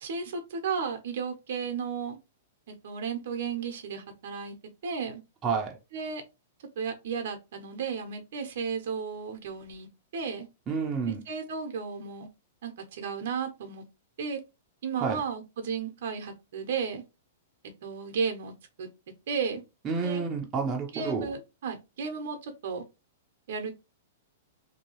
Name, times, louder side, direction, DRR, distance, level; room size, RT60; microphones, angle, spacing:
voice 1, 0.0-2.2 2.7-4.5 4.8-5.2 5.9-6.2 6.8-10.5 11.3-12.3 12.6-13.8 14.2-14.4 14.8-17.0 17.8-18.9 19.3-19.6 20.0-20.2 20.9-22.8 23.5-23.7, right 5 dB, 65° right, 0.8 m, -34 dB
voice 2, 5.4-5.8 10.7-11.2 15.0-15.2 19.8-21.3, right 5 dB, 25° right, 0.6 m, -29 dB
2.7 x 2.3 x 3.0 m
hypercardioid pair, 125°, 0 cm